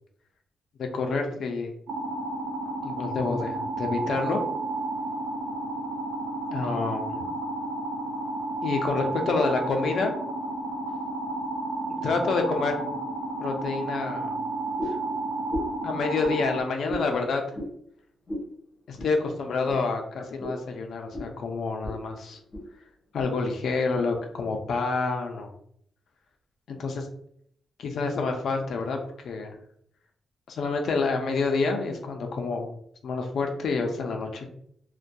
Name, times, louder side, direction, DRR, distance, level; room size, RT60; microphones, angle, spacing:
voice 1, 0.8-1.7 2.8-4.4 6.5-7.3 8.6-10.1 12.0-12.8 13.4-14.4 15.8-17.4 18.9-22.4 23.1-25.5 26.7-27.1 27.8-29.0 29.2-29.6 30.5-32.8 33.0-34.5, left 4 dB, 65° left, 3 dB, 0.4 m, -28 dB
sound 1, 1.9-16.6, right 2 dB, 70° right, 0.5 m, -32 dB
sound 2, 14.8-15.1 15.5-15.8 16.2-16.4 16.9-17.1 17.5-17.7 18.3-18.5 19.0-19.1 19.6-19.8 20.4-20.6 21.1-21.3 21.8-22.0 22.3-22.7 23.2-23.3 23.9-24.1, left 1 dB, 35° left, 1.0 m, -34 dB
2.6 x 2.2 x 2.2 m, 0.67 s
wide cardioid pair, 140°, 0 cm